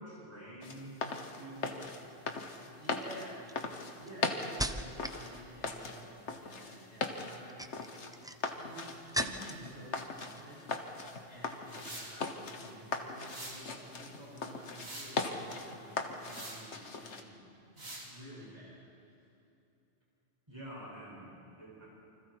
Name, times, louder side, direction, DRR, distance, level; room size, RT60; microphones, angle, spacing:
voice 1, 0.0-1.9 20.5-21.9, right 1 dB, 25° right, -5 dB, 7.4 m, -48 dB
sound 1, 0.6-17.2, left 3 dB, 80° left, 1.8 m, -40 dB
sound 2, 1.8-2.1 2.8-5.2 5.5-6.0 7.3-9.7 10.0-10.7 11.0-11.2, right 1 dB, 5° right, 0.6 m, -40 dB
voice 2, 2.8-3.4 4.0-7.8 8.4-10.8 11.3-17.5 17.7-18.8, right 1 dB, 80° right, -7 dB, 7.4 m, -51 dB
sound 3, 11.7-12.2 13.2-13.7 14.4-15.2 16.2-16.7 17.8-18.1, right 1 dB, 60° right, 3.5 m, -45 dB
29.0 x 25.5 x 4.8 m, 2.9 s
omnidirectional pair, 1.2 m